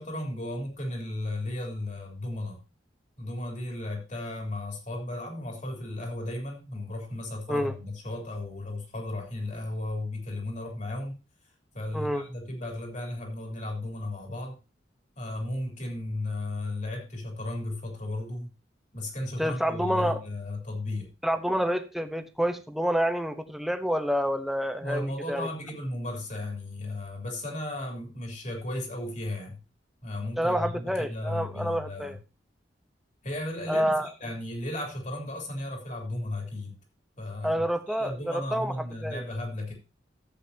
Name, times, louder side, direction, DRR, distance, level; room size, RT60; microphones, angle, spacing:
voice 1, 0.0-2.6 3.2-11.2 11.7-14.6 15.2-18.5 18.9-21.1 24.8-29.6 30.0-32.2 33.2-36.7 37.2-39.7, left 1 dB, 45° left, 1 dB, 3.3 m, -35 dB
voice 2, 11.9-12.3 19.4-20.2 21.2-25.5 30.4-32.2 33.7-34.1 37.4-38.7 39.0-39.2, equal, ahead, 8 dB, 0.9 m, -28 dB
14.0 x 8.0 x 2.8 m, 0.28 s
head